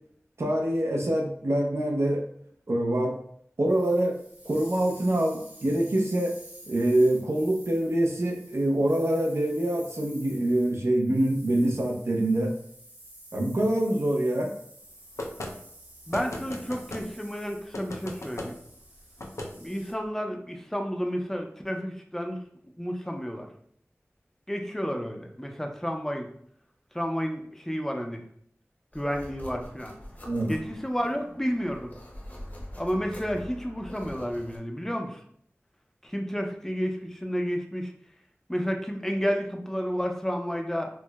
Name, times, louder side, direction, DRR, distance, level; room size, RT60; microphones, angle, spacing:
voice 1, 0.4-2.2 2.7-3.2 3.6-4.2 4.4-6.3 6.7-12.5 13.3-14.5 30.3-30.5, right 1 dB, 65° right, 1 dB, 0.6 m, -25 dB
sound 1, 3.7-19.9, right 1 dB, 40° right, 1.1 m, -50 dB
sound 2, 15.2-15.5 16.1-17.1 17.7-18.5 19.2-19.5, left 1 dB, 80° left, 0.5 m, -36 dB
voice 2, 16.1-18.6 19.6-22.4 22.8-23.5 24.5-26.3 26.9-28.2 28.9-29.9 30.5-31.9 32.8-35.2 36.0-37.9 38.5-40.9, equal, 10° left, 3 dB, 0.5 m, -31 dB
sound 3, 28.9-34.6, left 1 dB, 35° left, 0.8 m, -44 dB
4.4 x 2.1 x 2.3 m, 0.66 s
wide cardioid pair, 55°, 5 cm